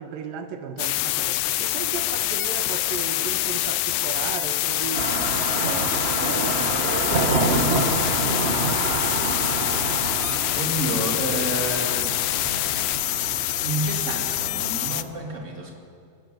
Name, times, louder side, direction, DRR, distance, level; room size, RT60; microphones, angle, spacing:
voice 1, 0.0-5.1 5.5-5.9 6.2-8.7, right 7 dB, 85° right, 7 dB, 3.0 m, -36 dB
sound 1, 0.8-15.0, left 15 dB, 85° left, 2.5 m, -25 dB
sound 2, 4.9-15.0, right 2 dB, 40° right, 0.9 m, -28 dB
voice 2, 10.5-12.2 13.6-15.8, right 2 dB, 20° right, 1 dB, 3.0 m, -30 dB
24.0 x 18.5 x 9.3 m, 2.3 s
omnidirectional pair, 4.0 m